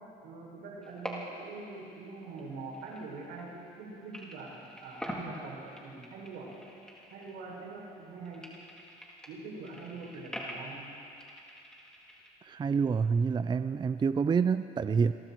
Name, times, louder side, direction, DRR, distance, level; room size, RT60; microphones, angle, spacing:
voice 1, 0.2-4.6 4.8-6.5 7.1-8.5 9.3-10.9, right 3 dB, 85° right, -3 dB, 7.1 m, -44 dB
sound 1, 0.8-1.6 1.9-3.8 4.1-7.7 8.0-12.3, equal, 5° left, 3.8 m, -45 dB
voice 2, 12.5-15.1, right 5 dB, 25° right, 11 dB, 0.5 m, -27 dB
29.0 x 22.0 x 4.6 m, 2.7 s
cardioid pair, 110°, 17 cm